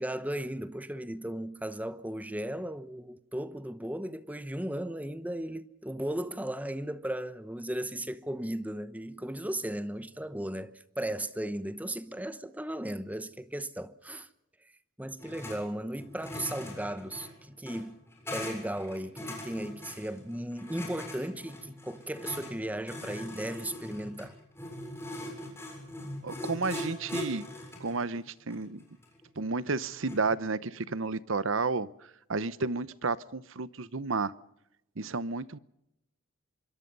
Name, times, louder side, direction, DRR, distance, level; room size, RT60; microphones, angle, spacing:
voice 1, 0.0-10.7 11.0-14.3 15.0-17.9 18.3-24.4, right 1 dB, 5° right, 1.0 m, -36 dB
sound 1, 15.2-15.6 15.9-30.3, left 1 dB, 10° left, 7.3 m, -41 dB
voice 2, 26.2-27.5 27.8-28.8 29.4-31.9 32.3-34.3 35.0-35.6, right 4 dB, 65° right, 0.9 m, -31 dB
26.0 x 23.0 x 5.5 m
head